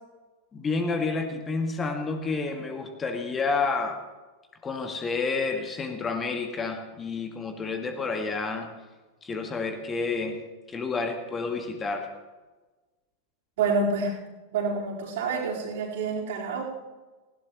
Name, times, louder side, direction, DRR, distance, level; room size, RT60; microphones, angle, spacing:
voice 1, 0.5-4.0 4.6-8.7 9.2-10.4 10.7-12.1, left 4 dB, 20° left, 5 dB, 1.8 m, -29 dB
voice 2, 13.6-14.1 14.5-16.6, right 4 dB, 55° right, -3 dB, 4.2 m, -27 dB
19.0 x 17.0 x 3.1 m, 1.2 s
figure-of-eight pair, 90°, 0 cm